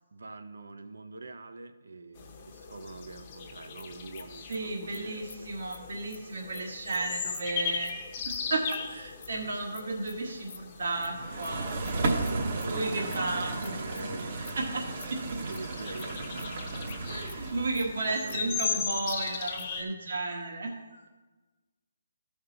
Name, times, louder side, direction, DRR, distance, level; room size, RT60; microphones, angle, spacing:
voice 1, 0.1-5.2 12.0-14.4 14.7-14.8 15.4-16.6 18.2-18.9, right 3 dB, 85° right, 9 dB, 0.7 m, -44 dB
sound 1, 2.2-19.8, left 6 dB, 25° left, 0.8 m, -39 dB
sound 2, 3.6-9.3 9.7-17.0 17.3-17.4 17.7-17.8 18.1-19.9, left 6 dB, 50° left, 0.5 m, -50 dB
voice 2, 4.5-7.9 8.2-11.8 12.6-13.7 14.0-14.1 14.5-15.4 16.8-21.0, right 2 dB, 65° right, 1 dB, 1.4 m, -34 dB
sound 3, 11.0-18.0, right 3 dB, 40° right, 0.9 m, -34 dB
13.0 x 5.3 x 4.0 m, 1.2 s
hypercardioid pair, 165°, 0 cm